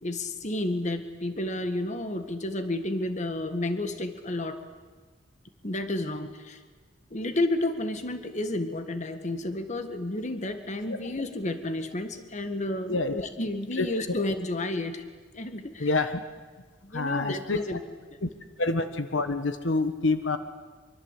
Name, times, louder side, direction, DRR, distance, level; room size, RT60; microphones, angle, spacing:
voice 1, 0.0-4.6 5.6-6.6 7.1-15.0 15.3-16.0 16.8-17.8, left 1 dB, 40° left, 8 dB, 1.7 m, -31 dB
voice 2, 12.9-13.2 13.8-13.9 15.8-16.1 16.9-17.6 18.2-18.3 18.6-20.4, left 3 dB, 80° left, 9 dB, 1.4 m, -27 dB
25.0 x 23.5 x 8.4 m, 1.4 s
head